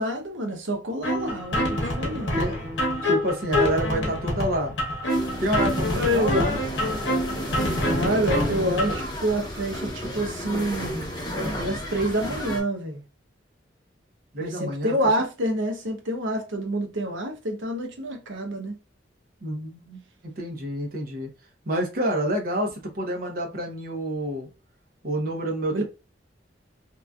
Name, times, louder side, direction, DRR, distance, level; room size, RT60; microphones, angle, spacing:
voice 1, 0.0-2.4 5.9-6.6 7.9-13.0 14.4-18.8 25.7-25.8, right 1 dB, 85° right, 0.8 m, -27 dB
sound 1, 1.0-9.0, left 1 dB, 65° left, 0.9 m, -26 dB
voice 2, 2.3-2.6 3.1-4.7 5.4-6.5 14.3-14.9 19.4-20.0 20.4-21.3 21.7-24.5 25.0-25.8, right 1 dB, 50° right, 0.8 m, -28 dB
sound 2, 5.1-12.6, equal, 20° left, 0.8 m, -33 dB
2.9 x 2.5 x 2.3 m
head